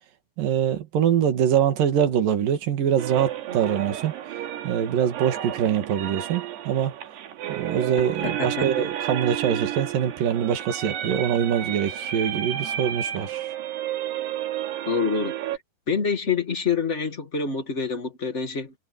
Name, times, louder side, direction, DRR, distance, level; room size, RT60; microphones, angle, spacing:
voice 1, 0.4-4.1 4.6-7.0 7.5-13.5, right 9 dB, 60° right, 3.7 m, -24 dB
sound 1, 3.0-15.6, right 11 dB, 85° right, 4.0 m, -32 dB
voice 2, 8.2-8.7 14.8-15.3 15.9-18.7, left 5 dB, 75° left, 0.6 m, -26 dB
omnidirectional pair, 4.7 m